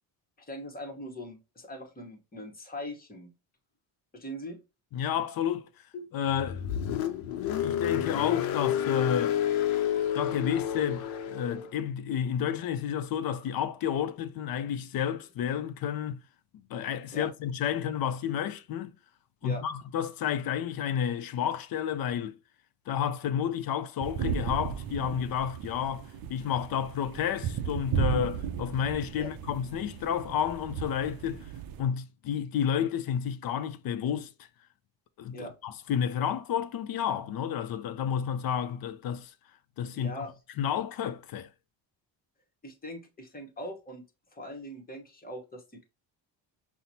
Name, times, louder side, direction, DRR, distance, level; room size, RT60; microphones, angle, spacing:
voice 1, 0.4-3.3 4.1-4.6 5.9-6.1 17.1-17.3 19.4-19.6 29.2-29.3 35.3-35.5 39.9-40.3 42.6-44.0 44.3-45.8, equal, 20° left, 0.9 m, -41 dB
voice 2, 4.9-5.7 6.1-6.6 7.4-9.4 10.1-16.2 16.5-18.9 19.4-22.4 22.9-31.5 31.8-34.3 35.2-39.3 39.8-40.3 40.6-41.5, left 9 dB, 50° left, 0.5 m, -31 dB
Car, 6.3-11.7, left 10 dB, 85° left, 0.6 m, -30 dB
sound 1, 24.0-31.8, right 8 dB, 50° right, 0.5 m, -35 dB
5.7 x 2.1 x 2.7 m
cardioid pair, 120°, 46 cm